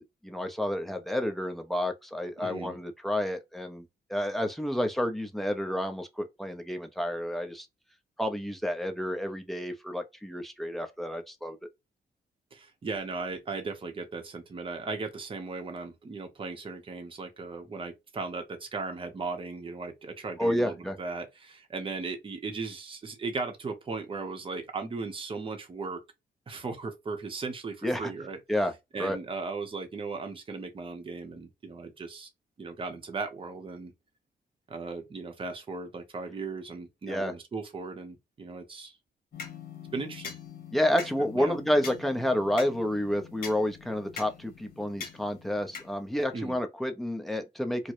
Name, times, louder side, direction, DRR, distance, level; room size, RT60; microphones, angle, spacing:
voice 1, 0.0-7.7 8.2-11.6 20.4-21.0 27.8-28.1 28.5-28.7 29.0-29.2 37.1-37.3 40.7-47.9, left 1 dB, ahead, 0.5 m, -30 dB
voice 2, 2.4-2.8 12.5-26.0 26.5-28.4 28.9-32.3 32.6-33.9 34.7-39.0 39.9-40.3 41.3-41.6 46.3-46.6, right 4 dB, 30° right, 0.8 m, -37 dB
sound 1, 39.3-46.3, left 6 dB, 60° left, 1.2 m, -44 dB
4.6 x 2.1 x 2.5 m
wide cardioid pair, 170°, 18 cm